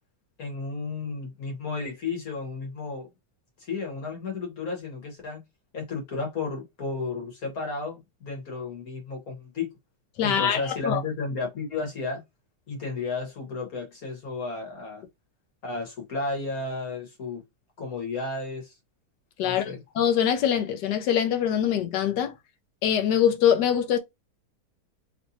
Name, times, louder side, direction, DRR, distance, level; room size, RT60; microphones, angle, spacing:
voice 1, 0.4-3.1 3.6-5.4 5.7-9.7 10.2-12.2 12.7-15.0 15.6-17.4 17.8-18.7 19.4-19.8, left 3 dB, 60° left, 1.7 m, -33 dB
voice 2, 10.2-11.0 19.4-22.3 22.8-24.0, left 9 dB, 85° left, 1.4 m, -23 dB
3.2 x 3.1 x 2.7 m
omnidirectional pair, 1.8 m